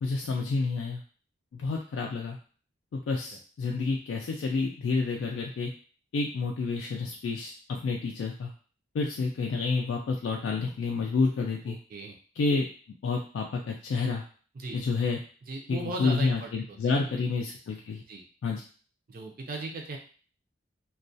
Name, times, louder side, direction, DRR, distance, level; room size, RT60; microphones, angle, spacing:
voice 1, 0.0-1.0 1.5-2.4 2.9-5.7 6.1-8.5 8.9-11.8 12.4-12.7 13.0-14.2 14.7-15.2 15.7-18.0 18.4-18.6, left 4 dB, 80° left, 0 dB, 0.3 m, -29 dB
voice 2, 11.7-12.1 14.5-14.8 15.4-16.9 17.2-17.3 18.1-18.2 19.1-20.0, right 2 dB, 45° right, 1 dB, 0.4 m, -37 dB
2.2 x 2.1 x 2.6 m, 0.40 s
head